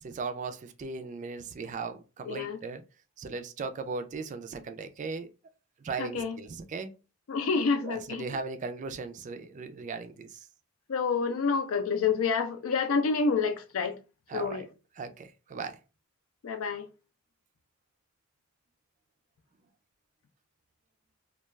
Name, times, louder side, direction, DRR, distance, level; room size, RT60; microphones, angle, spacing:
voice 1, 0.0-2.8 3.2-5.3 5.8-6.9 7.8-10.5 14.3-14.7 15.0-15.8, right 4 dB, 35° right, 0.3 m, -37 dB
voice 2, 2.3-2.6 6.0-6.4 7.3-8.2 10.9-14.0 14.3-14.6 16.4-16.9, left 5 dB, 75° left, 0.4 m, -28 dB
2.3 x 2.3 x 3.0 m
head